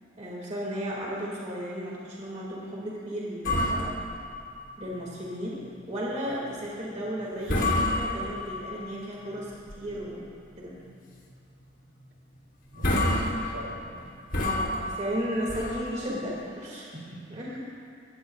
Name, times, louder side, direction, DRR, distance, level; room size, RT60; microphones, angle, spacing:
voice 1, 0.2-3.9 4.8-5.6 5.9-10.2 10.6-10.7 14.4-16.9 17.3-17.6, equal, 35° right, -5 dB, 1.9 m, -34 dB
sound 1, 3.4-5.3 5.6-5.7 6.3-6.5 7.0-7.2 7.5-8.8 9.3-10.1 10.5-10.6 11.1-11.3 11.6-11.7 12.3-12.4 12.7-16.4, left 1 dB, 65° left, 2.7 m, -29 dB
voice 2, 12.7-14.2 16.9-17.6, right 1 dB, 70° right, -3 dB, 2.4 m, -43 dB
17.0 x 15.0 x 2.3 m, 2.4 s
head